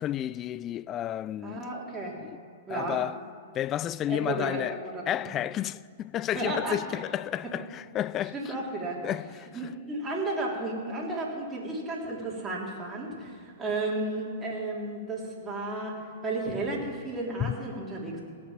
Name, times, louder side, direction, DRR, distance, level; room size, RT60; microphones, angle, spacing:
voice 1, 0.0-1.6 2.2-2.4 2.7-3.2 3.5-4.8 5.1-8.5 9.0-9.7 17.4-17.6, left 12 dB, 30° left, 0.4 m, -31 dB
voice 2, 1.4-2.2 2.7-3.0 4.1-5.3 6.3-6.8 7.4-7.5 8.3-9.0 9.5-16.0 16.2-18.2, right 2 dB, 15° right, 3.6 m, -33 dB
17.5 x 8.4 x 7.4 m
hypercardioid pair, 120°, 0 cm